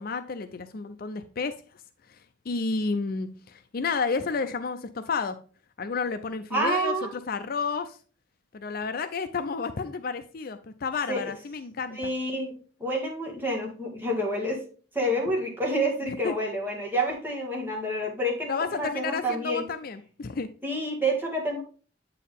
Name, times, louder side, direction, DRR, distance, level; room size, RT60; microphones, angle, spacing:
voice 1, 0.0-1.5 2.5-5.4 5.8-6.9 7.3-8.0 8.5-12.1 16.0-16.3 18.5-20.5, left 4 dB, 50° left, 9 dB, 0.5 m, -31 dB
voice 2, 6.5-7.1 11.1-11.2 11.9-12.5 12.8-14.6 14.9-19.6 20.6-21.6, right 1 dB, 10° right, -1 dB, 1.9 m, -28 dB
8.3 x 4.6 x 3.4 m, 0.39 s
head